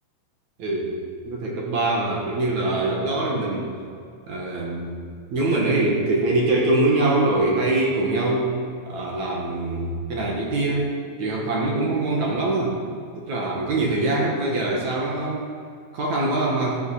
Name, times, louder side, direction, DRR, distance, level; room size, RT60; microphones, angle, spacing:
voice 1, 0.6-0.9 1.3-3.7 4.3-4.9 5.3-8.5 8.8-10.9 11.2-12.8 13.2-15.4 15.9-16.8, right 2 dB, 55° right, -2 dB, 2.8 m, -23 dB
14.0 x 10.5 x 5.0 m, 2.3 s
omnidirectional pair, 4.3 m